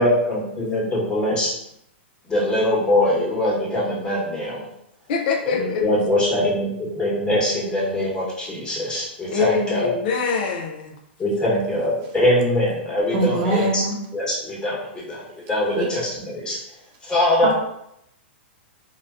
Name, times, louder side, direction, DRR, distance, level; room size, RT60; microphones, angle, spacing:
voice 1, 0.0-1.5 2.3-4.7 5.5-9.9 11.2-13.8 14.1-15.2 15.5-16.6 17.0-17.5, left 1 dB, 15° left, -5 dB, 1.2 m, -22 dB
voice 2, 5.1-5.8 9.3-10.9, left 5 dB, 55° left, 3 dB, 0.4 m, -24 dB
voice 3, 13.1-14.0 15.7-15.9 17.4-17.5, right 3 dB, 40° right, 0 dB, 0.8 m, -22 dB
3.7 x 2.2 x 2.5 m, 0.77 s
hypercardioid pair, 115°, 6 cm